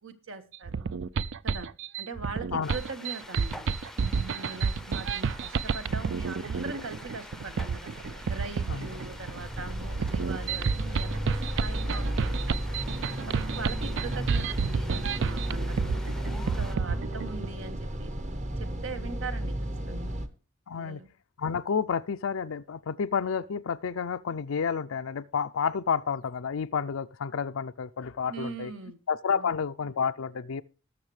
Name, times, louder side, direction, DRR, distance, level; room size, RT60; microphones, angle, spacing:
voice 1, 0.0-0.9 1.4-1.7 2.0-3.7 4.2-7.9 8.3-12.7 13.3-15.9 16.3-18.1 18.6-19.5 19.9-20.1 20.7-21.1 28.2-29.0 29.3-29.5, right 4 dB, 75° right, 1.4 m, -41 dB
sound 1, 0.5-17.5, right 5 dB, 60° right, 0.4 m, -30 dB
sound 2, 2.6-16.8, left 1 dB, ahead, 0.6 m, -47 dB
sound 3, 7.1-20.3, right 1 dB, 35° right, 1.0 m, -34 dB
voice 2, 20.7-21.0 21.4-28.7 29.1-30.6, left 6 dB, 75° left, 0.5 m, -30 dB
19.5 x 6.5 x 3.2 m
head